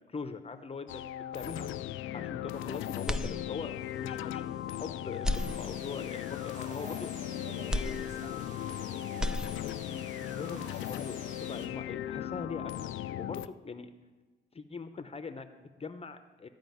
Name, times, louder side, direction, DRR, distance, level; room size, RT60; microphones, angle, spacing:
voice 1, 0.1-1.7 2.1-4.4 4.7-7.1 9.6-13.9 14.5-16.5, left 5 dB, 30° left, 9 dB, 0.8 m, -42 dB
sound 1, 0.9-13.5, left 12 dB, 80° left, 0.4 m, -37 dB
voice 2, 2.0-2.3 6.7-8.3 8.6-9.6, right 3 dB, 55° right, 0 dB, 3.2 m, -51 dB
sound 2, 3.0-3.9 4.4-4.5 5.1-6.2 7.7-8.8 9.1-10.0, left 1 dB, 5° right, 0.6 m, -35 dB
sound 3, 5.4-11.7, right 2 dB, 40° right, 1.8 m, -51 dB
14.0 x 5.1 x 9.3 m, 1.3 s
cardioid pair, 90°, 20 cm